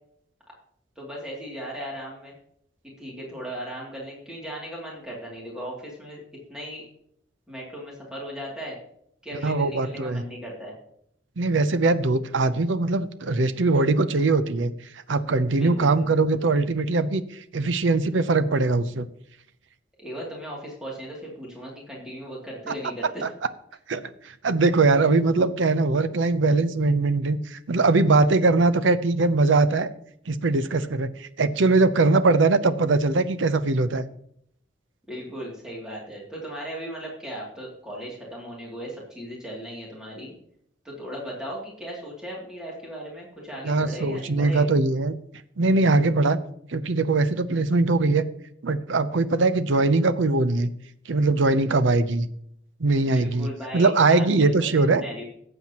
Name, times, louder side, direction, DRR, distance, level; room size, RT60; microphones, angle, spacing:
voice 1, 1.0-2.3 2.8-6.2 6.5-6.8 7.5-8.8 9.2-10.7 15.5-16.2 20.0-23.3 35.1-40.3 40.8-44.7 53.1-55.2, equal, 5° right, -4 dB, 2.7 m, -37 dB
voice 2, 9.4-10.2 11.4-14.7 15.1-17.2 17.5-19.1 22.7-22.8 23.9-24.0 24.4-29.9 30.3-34.0 43.6-45.2 45.6-46.4 46.7-48.2 48.6-50.7 51.1-52.3 52.8-55.0, right 3 dB, 85° right, 12 dB, 0.7 m, -21 dB
17.5 x 7.8 x 3.0 m, 0.70 s
head